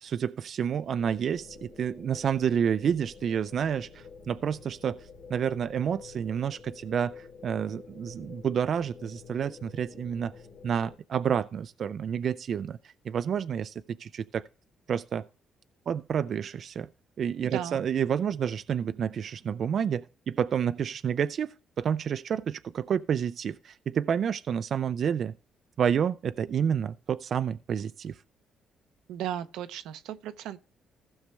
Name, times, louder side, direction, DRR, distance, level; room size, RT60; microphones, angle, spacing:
voice 1, 0.0-10.3 10.6-12.8 13.1-14.4 14.9-15.3 15.9-16.9 17.2-25.3 25.8-28.2, right 8 dB, 60° right, 0.4 m, -29 dB
sound 1, 1.0-11.0, left 5 dB, 85° left, 2.4 m, -49 dB
voice 2, 17.5-17.8 29.1-30.6, right 11 dB, 90° right, 0.7 m, -35 dB
15.5 x 6.4 x 3.2 m
cardioid pair, 90°, 0 cm